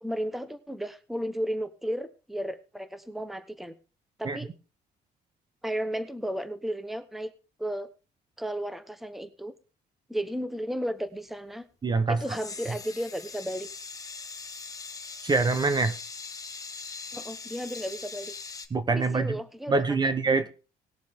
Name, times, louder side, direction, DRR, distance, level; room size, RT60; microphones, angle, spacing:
voice 1, 0.0-3.7 4.2-4.5 5.6-7.3 7.6-7.9 8.4-9.5 10.1-11.6 12.1-13.7 17.1-18.3 18.9-20.0, equal, ahead, 12 dB, 1.0 m, -34 dB
voice 2, 11.8-12.2 15.2-15.9 18.7-19.4 19.7-20.5, right 3 dB, 25° right, 12 dB, 1.0 m, -24 dB
sound 1, 12.2-18.7, left 4 dB, 20° left, 1.5 m, -41 dB
19.5 x 7.4 x 3.7 m, 0.33 s
cardioid pair, 110°, 17 cm